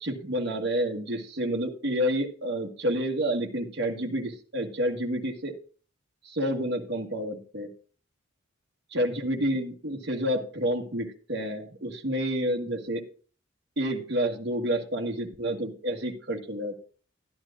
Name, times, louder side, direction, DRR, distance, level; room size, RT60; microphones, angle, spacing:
voice 1, 0.0-5.5 6.2-7.7 8.9-13.0 13.8-16.8, equal, 55° right, 1 dB, 1.5 m, -29 dB
12.5 x 11.0 x 2.4 m, 0.40 s
head